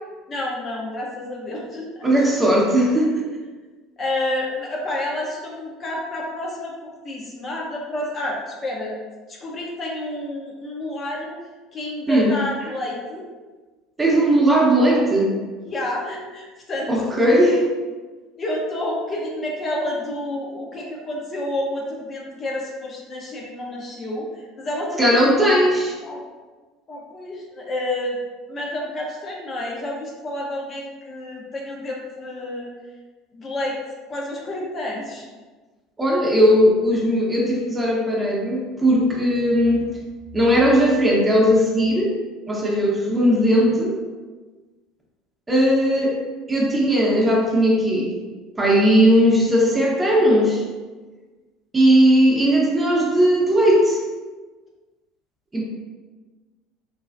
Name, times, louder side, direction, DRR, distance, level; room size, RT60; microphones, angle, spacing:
voice 1, 0.3-2.1 4.0-8.9 9.3-11.3 11.7-13.3 15.7-17.1 18.4-24.3 24.6-25.6 26.0-26.2 26.9-28.2 28.5-32.7 33.3-33.8 34.1-35.3, left 1 dB, 35° left, -2 dB, 0.6 m, -29 dB
voice 2, 2.0-3.2 12.1-12.4 14.0-15.4 16.9-17.7 25.0-25.9 36.0-39.9 40.3-42.2 42.5-44.0 45.5-46.2 46.5-48.1 48.6-50.6 51.7-54.0 55.5-55.6, equal, 20° right, -2 dB, 0.8 m, -18 dB
3.2 x 2.3 x 2.4 m, 1.3 s
hypercardioid pair, 70°, 0 cm